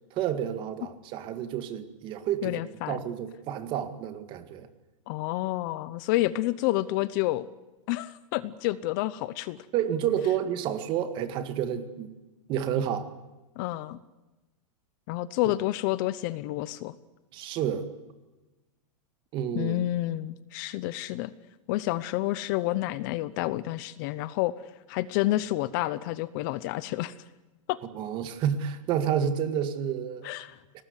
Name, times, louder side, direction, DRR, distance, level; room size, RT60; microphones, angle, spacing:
voice 1, 0.1-2.6 2.9-4.7 9.7-12.1 12.5-13.1 17.3-17.9 19.3-19.9 27.9-30.3 30.7-30.8, right 9 dB, 30° right, 10 dB, 2.0 m, -30 dB
voice 2, 2.4-3.0 5.1-7.5 7.9-9.6 13.6-14.0 15.1-16.9 19.5-21.3 21.7-24.5 24.9-27.1 27.7-27.8 30.2-30.6, left 16 dB, 35° left, 17 dB, 0.8 m, -29 dB
23.0 x 19.5 x 9.9 m, 1.1 s
supercardioid pair, 165°, 17 cm